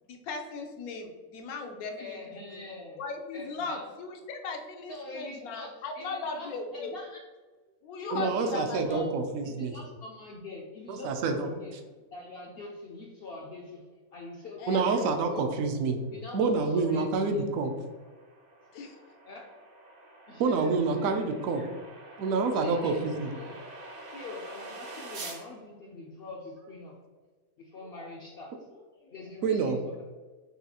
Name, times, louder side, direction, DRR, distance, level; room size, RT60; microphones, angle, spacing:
voice 1, 0.1-2.6 3.0-6.9 7.8-9.0 14.6-15.0 18.7-19.0, left 4 dB, 85° left, 4 dB, 1.1 m, -38 dB
voice 2, 2.0-3.0 3.3-3.9 4.9-7.2 8.0-9.1 9.4-11.8 12.1-13.8 14.1-15.5 16.1-17.4 19.3-19.5 20.3-21.7 22.5-23.5 24.1-27.0 27.6-30.0, left 3 dB, 70° left, -2 dB, 0.5 m, -44 dB
voice 3, 8.1-9.7 10.9-11.5 14.7-16.0 16.3-17.7 20.4-21.6 22.2-23.3 29.4-29.8, right 4 dB, 70° right, 5 dB, 0.9 m, -27 dB
sound 1, 16.8-25.4, right 2 dB, 55° right, 0.5 m, -46 dB
5.5 x 2.3 x 2.8 m, 1.3 s
omnidirectional pair, 1.5 m